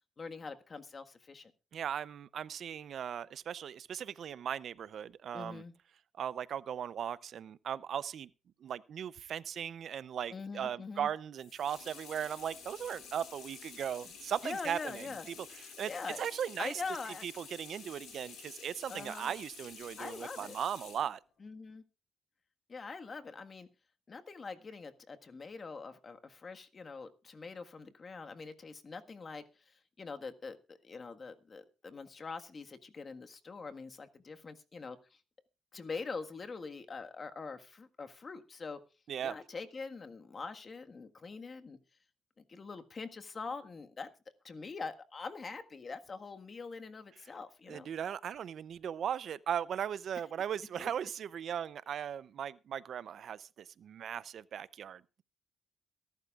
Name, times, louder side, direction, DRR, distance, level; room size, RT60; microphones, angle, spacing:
voice 1, 0.2-1.5 5.3-5.7 10.3-11.1 14.4-15.3 15.8-16.3 16.6-17.2 18.9-19.3 20.0-20.6 21.4-21.8 22.7-23.7 24.1-35.2 35.7-38.8 39.2-41.8 42.5-44.1 44.4-47.9 50.8-50.9, left 4 dB, 35° left, 1.6 m, -44 dB
voice 2, 1.7-5.6 6.2-8.3 8.6-15.1 15.4-15.5 15.8-15.9 16.2-16.8 17.2-21.2 39.1-39.3 47.7-55.2, right 9 dB, 60° right, 0.6 m, -38 dB
sound 1, 11.3-21.1, left 6 dB, 75° left, 7.2 m, -51 dB
23.0 x 12.0 x 2.4 m
cardioid pair, 90°, 0 cm